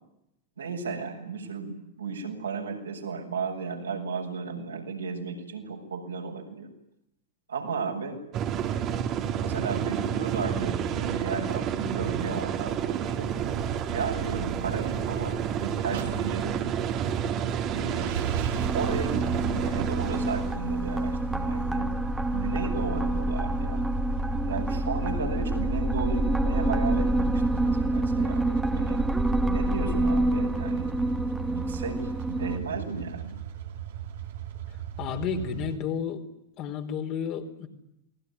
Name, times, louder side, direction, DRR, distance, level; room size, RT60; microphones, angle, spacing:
voice 1, 0.6-6.7 7.5-8.2 9.3-13.3 13.9-16.7 17.7-18.3 18.7-21.9 22.3-23.8 24.4-29.0 29.5-31.0 31.4-32.0 32.3-33.4, right 5 dB, 75° right, 1 dB, 7.5 m, -34 dB
sound 1, 8.3-20.5, right 8 dB, 35° right, 3.0 m, -30 dB
sound 2, 15.9-35.8, right 10 dB, 55° right, 2.9 m, -38 dB
sound 3, 18.5-32.6, right 1 dB, 10° right, 2.2 m, -27 dB
voice 2, 34.7-36.2 36.6-37.7, left 7 dB, 40° left, 4 dB, 4.1 m, -32 dB
28.5 x 21.0 x 9.9 m, 0.83 s
figure-of-eight pair, 90°, 0 cm